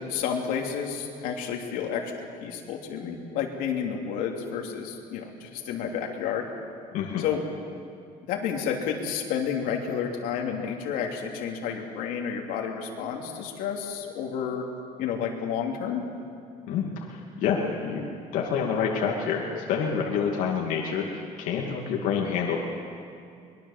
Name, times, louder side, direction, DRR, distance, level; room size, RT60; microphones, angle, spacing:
voice 1, 0.1-6.5 7.2-7.4 8.3-14.7 15.0-16.0, left 7 dB, 85° left, 1 dB, 3.0 m, -30 dB
voice 2, 6.9-7.3 16.7-22.6, left 6 dB, 70° left, -1 dB, 2.5 m, -28 dB
23.5 x 22.0 x 7.4 m, 2.4 s
cardioid pair, 165°, 14 cm